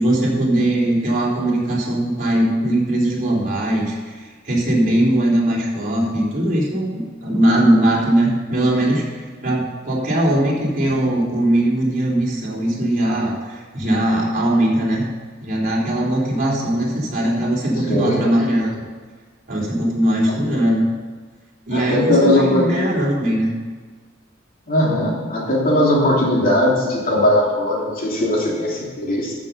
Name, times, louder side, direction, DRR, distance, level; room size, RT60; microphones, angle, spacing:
voice 1, 0.0-15.1 15.4-18.9 19.5-20.9 21.7-23.5, right 1 dB, 45° right, -4 dB, 3.7 m, -20 dB
voice 2, 17.9-18.2 21.7-22.7 24.7-29.3, left 1 dB, 45° left, -3 dB, 2.9 m, -18 dB
13.5 x 7.3 x 5.6 m, 1.5 s
head